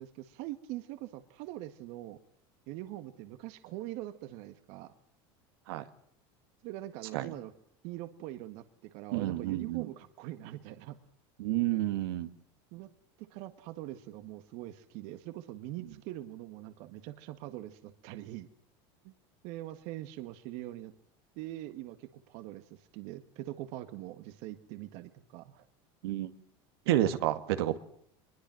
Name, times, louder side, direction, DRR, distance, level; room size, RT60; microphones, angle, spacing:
voice 1, 0.0-2.2 2.7-4.9 6.6-7.5 7.8-11.0 12.7-12.9 13.2-18.5 19.0-19.1 19.4-20.9 21.4-25.7, right 15 dB, 60° right, 10 dB, 1.8 m, -43 dB
voice 2, 9.1-9.9 11.4-12.3 26.0-26.3 26.9-27.8, right 14 dB, 85° right, 9 dB, 2.3 m, -30 dB
24.0 x 22.0 x 7.7 m, 0.66 s
supercardioid pair, 135°, 13 cm